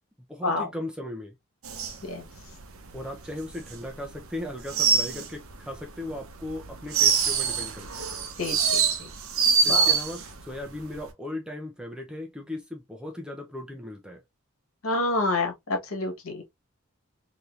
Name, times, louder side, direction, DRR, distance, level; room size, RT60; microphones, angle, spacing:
voice 1, 0.3-1.4 2.9-8.1 9.6-14.2, left 1 dB, 5° right, 0.5 m, -37 dB
sound 1, 1.6-4.2 4.5-5.8 6.1-10.4 10.7-11.1, right 6 dB, 70° right, 0.7 m, -25 dB
voice 2, 8.4-9.1 9.7-9.9 14.8-16.4, left 2 dB, 75° left, 1.3 m, -28 dB
3.5 x 2.8 x 2.4 m
head